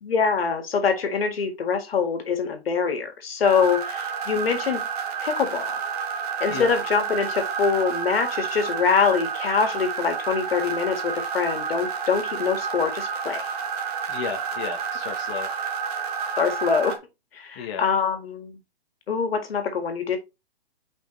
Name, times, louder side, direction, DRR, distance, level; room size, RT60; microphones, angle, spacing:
voice 1, 0.0-4.8 5.2-5.8 6.4-13.5 16.4-17.0 17.3-18.6 19.1-20.2, left 5 dB, 70° left, 2.0 m, -24 dB
sound 1, 3.4-17.0, right 6 dB, 40° right, 1.5 m, -30 dB
voice 2, 14.1-15.6 17.5-17.9, left 6 dB, 25° left, 1.0 m, -33 dB
6.5 x 5.2 x 3.2 m
hypercardioid pair, 165°, 31 cm